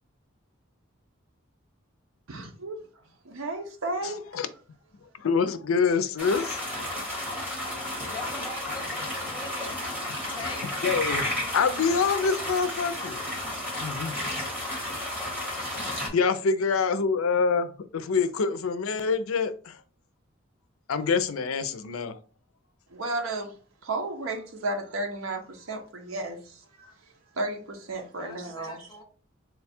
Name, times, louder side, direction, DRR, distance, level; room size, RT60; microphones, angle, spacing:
voice 1, 2.3-2.8 3.2-4.3 22.9-23.6 23.8-26.9 27.4-28.8, right 2 dB, 80° right, 0.8 m, -33 dB
voice 2, 4.0-4.5 5.2-6.6 10.8-13.2 13.8-14.1 16.1-17.7 17.9-19.8 20.9-22.2, left 5 dB, 85° left, 0.5 m, -26 dB
sound 1, 6.2-16.1, left 1 dB, 10° right, 1.3 m, -32 dB
voice 3, 8.0-10.7 28.2-29.0, left 3 dB, 20° left, 0.6 m, -42 dB
3.9 x 2.3 x 4.2 m
head